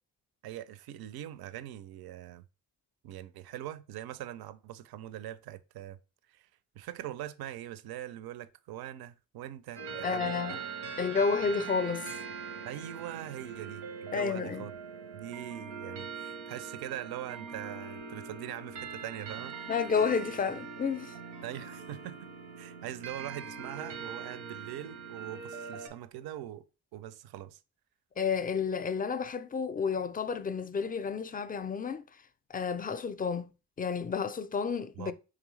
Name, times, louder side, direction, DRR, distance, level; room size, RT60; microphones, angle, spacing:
voice 1, 0.4-2.4 3.0-6.0 6.3-6.5 6.8-10.6 12.6-14.7 15.1-19.7 21.4-22.3 22.6-26.7 26.9-27.6 35.0-35.1, right 12 dB, 60° right, 0.5 m, -42 dB
sound 1, 9.7-25.9, right 5 dB, 90° right, 0.8 m, -42 dB
voice 2, 10.0-10.6 11.0-12.1 14.1-14.7 19.7-21.1 28.2-32.0 32.5-33.5 33.8-35.1, left 5 dB, 20° left, 0.4 m, -31 dB
3.8 x 3.2 x 3.1 m
hypercardioid pair, 40°, 43 cm